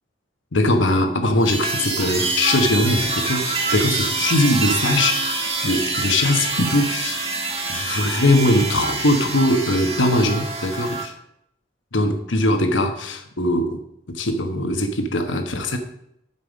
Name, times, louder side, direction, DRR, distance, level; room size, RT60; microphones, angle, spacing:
voice 1, 0.5-7.2 7.7-11.1 11.9-13.8 14.1-15.8, left 1 dB, 80° left, 5 dB, 1.2 m, -21 dB
sound 1, 1.4-11.1, right 3 dB, 30° right, 1.7 m, -26 dB
11.5 x 5.7 x 5.1 m, 0.75 s
head